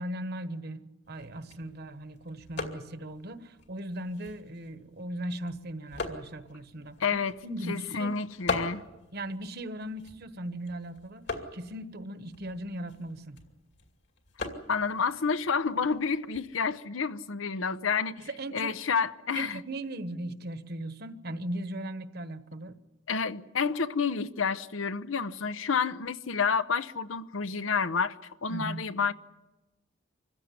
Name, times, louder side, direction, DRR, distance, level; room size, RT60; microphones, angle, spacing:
voice 1, 0.0-8.1 9.1-13.4 18.2-18.8 19.3-22.8 28.5-28.9, right 1 dB, 55° right, 1.2 m, -38 dB
sound 1, 1.0-16.6, left 3 dB, 60° left, 2.5 m, -42 dB
voice 2, 7.0-7.4 7.7-8.8 14.7-18.2 18.5-19.6 23.1-28.2 28.4-29.1, left 5 dB, 80° left, 0.8 m, -29 dB
25.5 x 15.5 x 9.7 m
head